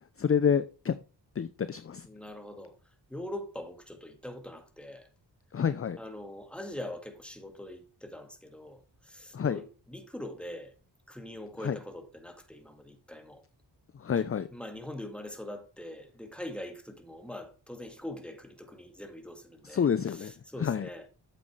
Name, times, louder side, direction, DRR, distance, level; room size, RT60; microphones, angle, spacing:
voice 1, 0.2-1.0 1.4-2.1 5.5-6.0 9.3-9.6 11.6-11.8 13.9-14.5 19.6-20.9, left 7 dB, 35° left, 0.5 m, -28 dB
voice 2, 2.0-2.8 3.1-5.1 6.0-10.7 11.1-13.4 14.5-19.8 20.2-21.1, left 1 dB, 5° left, 1.9 m, -43 dB
8.6 x 7.9 x 3.2 m
cardioid pair, 60°, 43 cm